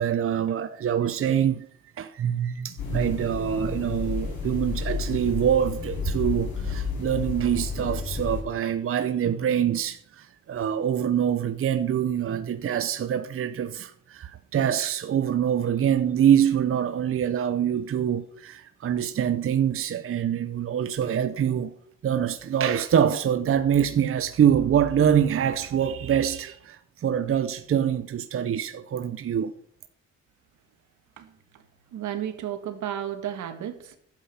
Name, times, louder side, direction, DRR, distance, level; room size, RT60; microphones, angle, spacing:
voice 1, 0.0-1.7 2.0-21.7 22.0-29.6, right 9 dB, 45° right, 0.7 m, -25 dB
sound 1, 2.8-8.4, left 5 dB, 80° left, 5.8 m, -31 dB
voice 2, 31.9-34.0, right 10 dB, 75° right, 1.7 m, -33 dB
12.0 x 8.2 x 5.6 m
cardioid pair, 90°, 30 cm